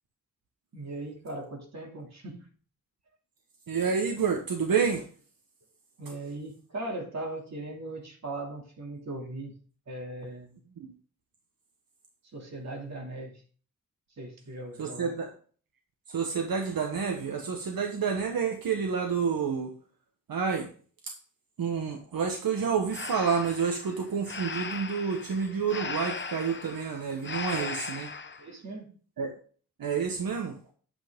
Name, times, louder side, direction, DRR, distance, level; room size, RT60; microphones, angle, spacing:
voice 1, 0.7-2.5 6.0-10.6 12.3-13.4 14.2-15.1 27.5-27.7 28.4-28.9, right 2 dB, 50° right, 1 dB, 2.8 m, -39 dB
voice 2, 3.7-5.1 10.8-10.9 14.8-15.3 16.1-19.7 20.3-20.7 21.0-21.1 21.6-28.1 29.2-29.3 29.8-30.6, right 6 dB, 85° right, 3 dB, 1.5 m, -29 dB
Breathing, 22.9-28.4, left 5 dB, 35° left, 0.8 m, -38 dB
10.0 x 8.4 x 3.7 m, 0.42 s
wide cardioid pair, 170°, 34 cm